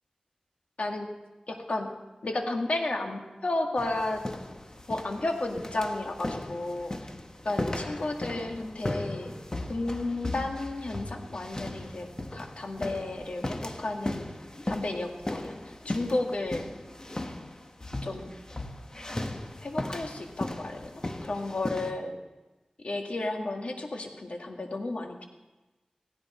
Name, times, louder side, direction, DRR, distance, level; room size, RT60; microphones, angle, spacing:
voice 1, 0.8-1.1 1.5-1.9 2.2-4.2 4.5-4.6 4.9-7.1 7.4-9.3 9.7-14.3 14.7-16.7 18.0-18.3 19.6-22.2 22.8-25.2, left 2 dB, 70° left, 3 dB, 1.9 m, -33 dB
sound 1, 3.8-21.9, left 1 dB, 30° left, 1.2 m, -37 dB
16.5 x 16.5 x 4.3 m, 1.1 s
wide cardioid pair, 50°, 2 cm